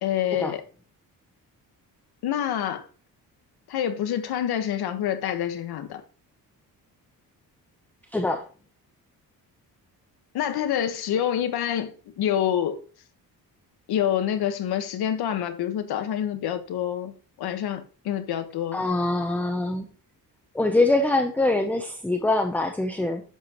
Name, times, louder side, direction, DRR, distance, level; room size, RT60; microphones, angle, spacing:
voice 1, 0.0-0.6 2.2-2.9 3.7-6.0 10.3-12.8 13.9-17.1 17.4-18.8, left 10 dB, 85° left, 1.5 m, -27 dB
voice 2, 8.1-8.4 18.7-19.8 20.5-23.2, left 2 dB, 5° left, 0.7 m, -24 dB
11.5 x 7.9 x 3.0 m
cardioid pair, 155°, 37 cm